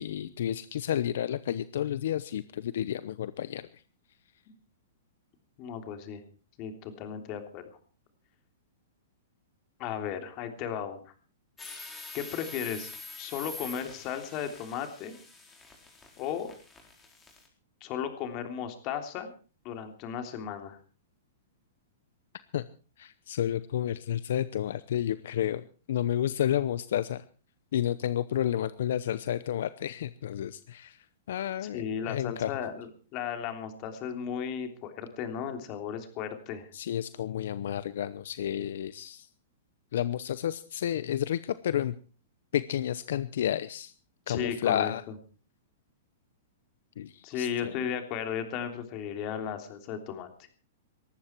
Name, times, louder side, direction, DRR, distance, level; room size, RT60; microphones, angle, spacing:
voice 1, 0.0-3.8 22.5-22.7 23.0-27.2 27.7-32.5 36.7-39.3 39.9-42.0 42.5-43.9 44.3-45.0 47.0-47.8, left 10 dB, 70° left, 15 dB, 0.8 m, -31 dB
voice 2, 5.6-6.2 6.6-7.6 9.8-11.0 12.1-12.9 13.2-15.2 16.2-16.5 17.8-19.3 19.6-20.8 31.7-36.7 44.3-44.9 47.2-50.3, left 8 dB, 35° left, 7 dB, 3.3 m, -35 dB
sound 1, 11.6-17.5, left 3 dB, 10° left, 4.4 m, -45 dB
19.0 x 15.0 x 4.6 m, 0.37 s
hypercardioid pair, 155°, 0 cm